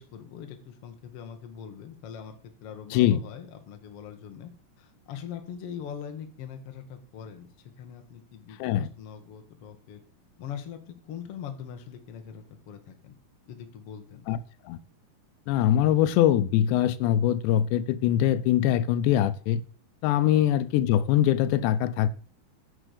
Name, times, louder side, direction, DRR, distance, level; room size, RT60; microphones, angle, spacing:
voice 1, 0.0-4.5 4.8-10.0 10.4-13.1 13.5-14.3 20.3-20.4, left 8 dB, 65° left, 1.4 m, -42 dB
voice 2, 2.9-3.2 8.6-8.9 14.3-14.4 14.7-14.8 15.5-19.6 20.0-22.1, left 11 dB, 90° left, 2.9 m, -23 dB
9.8 x 6.5 x 6.7 m
omnidirectional pair, 4.9 m